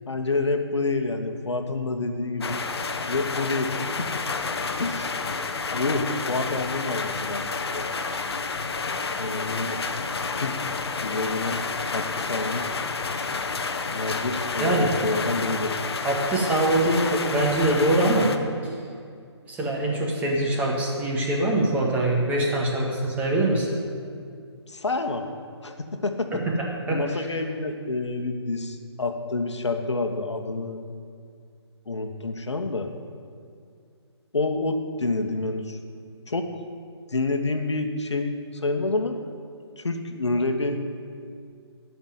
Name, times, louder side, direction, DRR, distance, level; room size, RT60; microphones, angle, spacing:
voice 1, 0.1-2.6 3.1-4.2 4.8-5.2 5.7-8.0 9.2-9.8 10.4-10.7 11.0-11.6 11.9-12.7 13.9-15.8 24.7-25.3 25.6-26.3 26.9-30.8 31.9-32.9 34.3-35.8 36.3-36.5 37.1-39.2 39.8-40.8, left 3 dB, 80° left, 5 dB, 1.3 m, -28 dB
sound 1, 2.4-18.4, left 4 dB, 60° left, 1.0 m, -30 dB
voice 2, 14.6-14.9 16.0-18.3 19.5-23.7 26.3-27.0, right 1 dB, 10° right, -3 dB, 1.7 m, -23 dB
12.5 x 5.9 x 9.4 m, 2.3 s
figure-of-eight pair, 145°, 15 cm